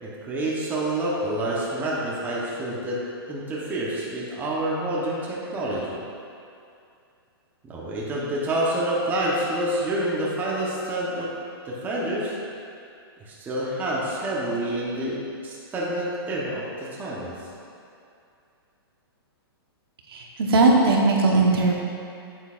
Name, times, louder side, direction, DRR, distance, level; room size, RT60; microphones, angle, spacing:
voice 1, 0.0-6.0 7.6-11.4 11.6-12.3 13.2-17.3, right 1 dB, 15° right, -6 dB, 1.0 m, -28 dB
voice 2, 20.1-21.7, right 3 dB, 65° right, -1 dB, 1.2 m, -19 dB
8.2 x 8.0 x 2.5 m, 2.5 s
hypercardioid pair, 150°, 13 cm